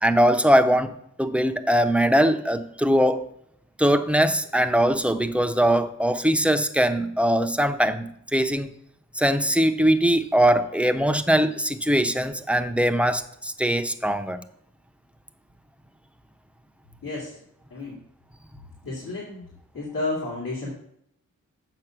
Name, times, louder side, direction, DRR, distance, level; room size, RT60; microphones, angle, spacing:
voice 1, 0.0-3.2 3.8-8.7 9.2-14.4, equal, 5° right, 7 dB, 0.6 m, -21 dB
voice 2, 17.0-17.4 17.7-18.0 18.8-19.4 19.7-20.7, left 2 dB, 85° left, -6 dB, 2.8 m, -31 dB
7.8 x 6.4 x 6.1 m, 0.72 s
wide cardioid pair, 120°, 31 cm